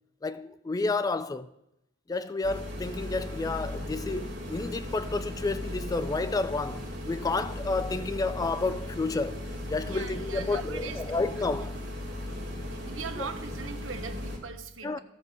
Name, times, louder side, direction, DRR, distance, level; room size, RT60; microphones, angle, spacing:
voice 1, 0.2-1.5 2.1-11.8 13.2-13.3 14.8-15.0, left 3 dB, 20° left, 0.3 m, -31 dB
sound 1, 2.4-14.4, left 1 dB, 60° right, 2.4 m, -37 dB
voice 2, 9.8-11.7 12.7-15.0, right 5 dB, 75° right, 1.0 m, -41 dB
14.0 x 6.8 x 4.8 m
head